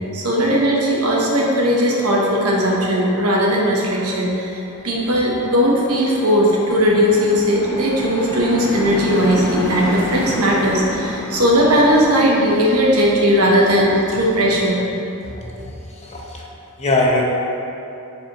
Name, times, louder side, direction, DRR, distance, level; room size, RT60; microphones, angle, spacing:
voice 1, 0.1-14.8 15.2-15.3, equal, 80° right, -3 dB, 1.1 m, -17 dB
sound 1, 4.7-12.2, left 1 dB, 70° left, 1.0 m, -29 dB
voice 2, 15.4-16.5 16.8-17.2, left 2 dB, 30° left, -2 dB, 0.8 m, -22 dB
7.5 x 4.8 x 3.1 m, 3.0 s
head